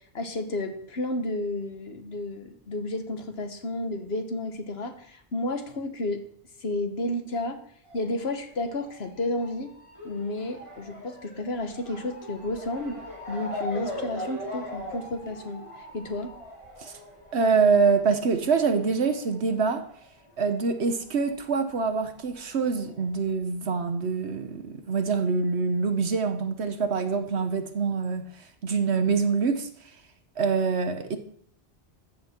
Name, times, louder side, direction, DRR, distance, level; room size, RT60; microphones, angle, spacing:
voice 1, 0.1-6.2 6.6-7.6 7.9-9.7 10.0-13.0 13.3-15.6 15.9-16.3, left 2 dB, 70° left, 1.7 m, -31 dB
Motor vehicle (road) / Siren, 7.8-20.9 21.1-22.3 22.9-23.0 23.3-23.4, equal, 30° left, 4.0 m, -41 dB
voice 2, 17.3-19.9 20.4-28.3 28.6-29.7 30.4-31.2, right 5 dB, 80° right, 1.3 m, -25 dB
14.0 x 9.7 x 4.5 m
omnidirectional pair, 1.1 m